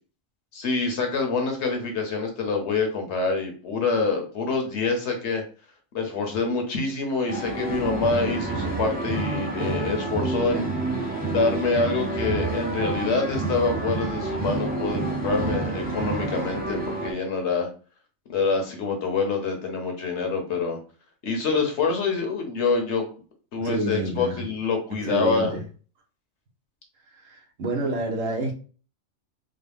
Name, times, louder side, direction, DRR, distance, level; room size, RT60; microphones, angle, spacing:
voice 1, 0.5-5.4 5.9-10.7 11.2-17.7 18.3-20.8 21.2-23.1 23.5-25.5, left 4 dB, 60° left, 1.1 m, -26 dB
sound 1, 7.3-17.1, right 3 dB, 10° right, 0.6 m, -28 dB
voice 2, 23.6-24.5 24.9-25.6 27.2-28.5, right 1 dB, 80° right, 1.2 m, -28 dB
3.8 x 2.1 x 3.4 m
omnidirectional pair, 1.3 m